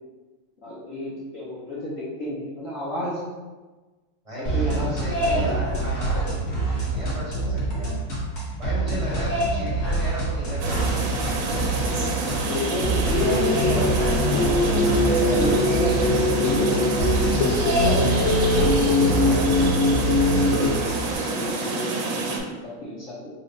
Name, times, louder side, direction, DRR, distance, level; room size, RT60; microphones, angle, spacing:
voice 1, 0.6-3.2 4.4-5.9 11.4-11.6 12.5-17.0 21.3-22.3 22.6-23.3, left 1 dB, 65° left, -8 dB, 0.8 m, -31 dB
voice 2, 4.2-7.9 8.6-11.0 17.8-19.7, left 1 dB, 25° right, -8 dB, 0.7 m, -36 dB
sound 1, 4.4-21.1, right 2 dB, 45° left, 1.2 m, -26 dB
sound 2, 10.6-22.4, right 3 dB, 75° right, 1.4 m, -28 dB
sound 3, 13.2-20.7, left 2 dB, 85° left, 1.6 m, -22 dB
3.9 x 2.2 x 4.0 m, 1.3 s
omnidirectional pair, 2.2 m